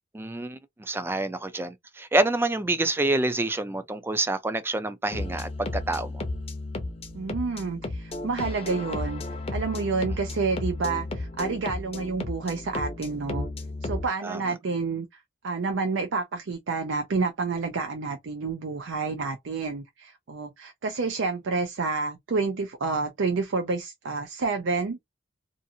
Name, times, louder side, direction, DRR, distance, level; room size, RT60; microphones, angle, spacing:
voice 1, 0.1-6.2 14.2-14.5, right 2 dB, 10° right, 0.3 m, -27 dB
sound 1, 5.1-14.1, left 2 dB, 30° left, 0.6 m, -33 dB
voice 2, 7.1-9.3 9.5-13.5 13.8-15.1 15.4-25.0, right 4 dB, 70° right, 0.5 m, -29 dB
2.5 x 2.4 x 2.7 m
head